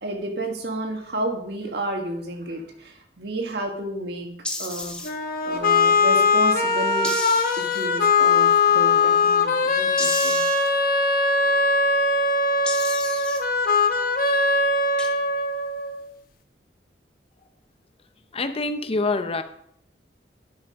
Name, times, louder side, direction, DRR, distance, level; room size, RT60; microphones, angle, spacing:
voice 1, 0.0-4.3 4.6-5.0 5.4-7.1 7.6-10.4, right 1 dB, 65° right, 4 dB, 1.6 m, -31 dB
sound 1, 4.4-5.1 7.0-7.8 10.0-10.7 12.6-13.4 15.0-15.1, left 2 dB, 5° left, 1.2 m, -31 dB
sound 2, 5.0-16.0, left 3 dB, 55° left, 1.0 m, -21 dB
voice 2, 18.3-19.4, left 3 dB, 35° left, 9 dB, 0.7 m, -25 dB
11.0 x 5.7 x 5.2 m, 0.71 s
head